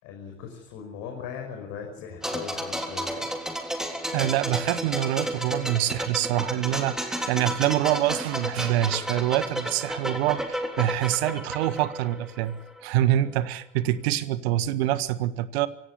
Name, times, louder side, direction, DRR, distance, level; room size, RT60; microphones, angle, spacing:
voice 1, 0.0-3.3, left 7 dB, 45° left, 1 dB, 5.9 m, -39 dB
sound 1, 2.2-12.8 13.1-13.3, equal, ahead, 3.5 m, -32 dB
voice 2, 4.1-15.7, right 13 dB, 55° right, 14 dB, 1.7 m, -26 dB
24.5 x 17.5 x 9.9 m, 0.82 s
figure-of-eight pair, 80°, 38 cm